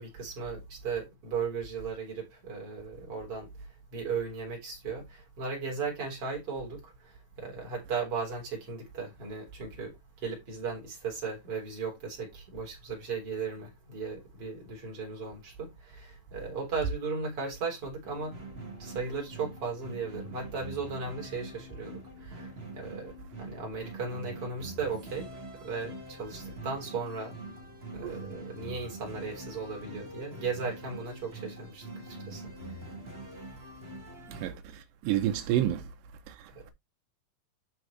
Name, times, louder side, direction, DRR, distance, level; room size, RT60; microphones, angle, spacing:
voice 1, 0.0-3.5 3.9-18.4 18.8-25.3 25.6-27.4 27.9-32.8 36.5-36.6, right 5 dB, 40° right, 4.4 m, -36 dB
sound 1, 18.0-34.5, right 1 dB, 25° right, 1.7 m, -44 dB
voice 2, 34.3-35.9 36.3-36.7, right 12 dB, 85° right, 2.5 m, -30 dB
11.5 x 4.2 x 3.3 m
omnidirectional pair, 3.9 m